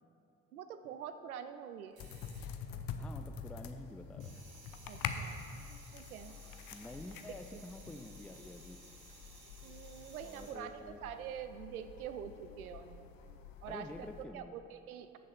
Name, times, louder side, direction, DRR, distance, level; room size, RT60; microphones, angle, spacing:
voice 1, 0.5-2.1 4.9-5.4 5.9-6.4 7.5-7.6 9.6-13.1 13.6-13.9 14.3-15.2, right 8 dB, 80° right, 10 dB, 0.6 m, -45 dB
sound 1, 1.9-3.2 3.5-10.5, right 3 dB, 55° right, 2.1 m, -58 dB
sound 2, 2.0-14.2, left 6 dB, 50° left, 0.7 m, -46 dB
voice 2, 3.0-4.4 6.7-8.8 10.2-11.1 13.7-14.6, left 2 dB, 5° left, 7 dB, 0.4 m, -49 dB
14.5 x 6.3 x 4.2 m, 2.6 s
figure-of-eight pair, 40°, 43 cm